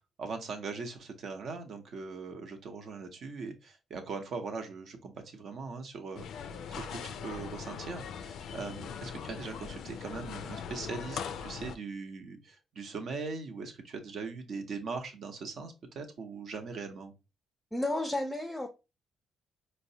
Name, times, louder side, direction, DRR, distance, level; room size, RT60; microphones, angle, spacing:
voice 1, 0.2-17.1, right 4 dB, 60° right, 0.8 m, -40 dB
sound 1, 6.1-11.8, left 7 dB, 75° left, 0.3 m, -41 dB
voice 2, 17.7-18.7, left 1 dB, 10° left, 0.5 m, -32 dB
4.5 x 2.1 x 2.7 m
cardioid pair, 90°, 0 cm